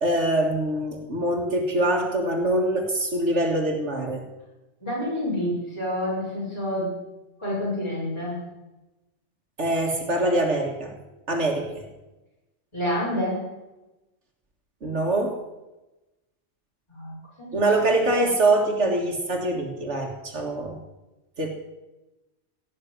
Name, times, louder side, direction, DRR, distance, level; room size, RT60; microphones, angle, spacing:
voice 1, 0.0-4.2 9.6-10.9 11.3-11.8 14.8-15.4 17.5-20.8 21.4-21.5, right 1 dB, 80° right, 1 dB, 2.1 m, -24 dB
voice 2, 4.8-6.9 7.4-8.4 12.7-13.4 16.9-17.8, left 1 dB, 25° left, -7 dB, 6.1 m, -28 dB
17.5 x 6.5 x 9.5 m, 1.0 s
omnidirectional pair, 1.2 m